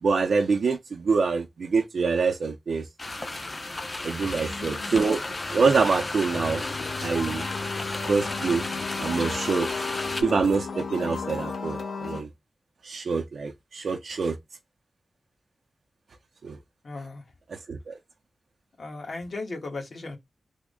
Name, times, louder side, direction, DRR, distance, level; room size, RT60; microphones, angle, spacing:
voice 1, 0.0-2.8 4.0-5.2 5.5-6.6 7.0-7.5 8.1-8.7 9.0-9.7 10.2-12.3 12.8-14.3 16.4-16.6 17.7-17.9, right 4 dB, 80° right, 0.5 m, -25 dB
sound 1, 3.0-10.2, left 2 dB, 35° left, 0.6 m, -33 dB
voice 2, 4.4-5.1 16.8-17.2 18.8-20.2, left 3 dB, 60° left, 1.2 m, -37 dB
sound 2, 6.3-12.2, left 4 dB, 80° left, 0.6 m, -34 dB
3.5 x 2.1 x 3.5 m
wide cardioid pair, 105°, 0 cm